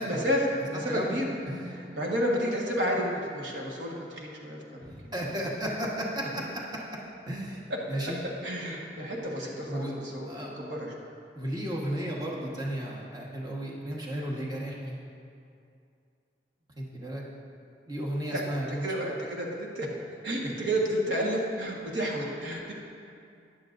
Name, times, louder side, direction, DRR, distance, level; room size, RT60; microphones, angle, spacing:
voice 1, 0.0-1.3 1.7-5.1 7.7-7.8 8.4-10.9 18.3-19.9 20.2-22.7, equal, 75° right, -2 dB, 1.5 m, -31 dB
voice 2, 1.5-1.8 4.8-6.4 7.3-7.6 7.9-8.2 9.7-9.9 10.3-10.5 11.3-14.9 16.8-17.2 17.9-18.8, right 1 dB, 25° right, -4 dB, 1.3 m, -34 dB
14.0 x 10.5 x 2.6 m, 2.5 s
head